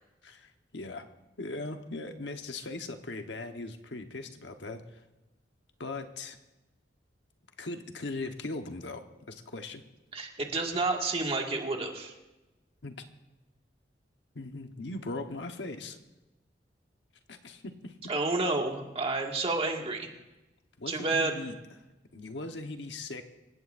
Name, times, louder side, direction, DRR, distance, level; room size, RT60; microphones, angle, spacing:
voice 1, 0.2-1.1 1.4-5.0 5.8-6.4 7.6-9.8 12.8-13.0 14.3-16.0 17.3-18.0 20.8-21.5 22.1-23.2, left 2 dB, 80° left, 6 dB, 1.2 m, -39 dB
voice 2, 10.1-12.1 18.1-20.1 20.9-21.3, right 3 dB, 35° right, 1 dB, 2.0 m, -30 dB
27.0 x 16.0 x 2.6 m, 1.0 s
head